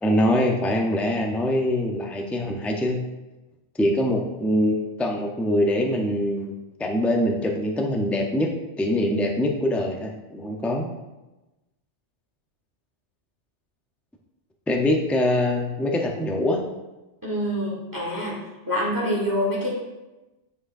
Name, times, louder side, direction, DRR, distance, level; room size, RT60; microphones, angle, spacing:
voice 1, 0.0-3.0 3.8-8.5 8.8-10.9 14.7-16.6, left 1 dB, ahead, 1 dB, 0.4 m, -23 dB
voice 2, 17.2-18.4 18.6-19.7, equal, 20° right, -5 dB, 1.3 m, -26 dB
8.7 x 5.0 x 2.6 m, 1.1 s
omnidirectional pair, 1.2 m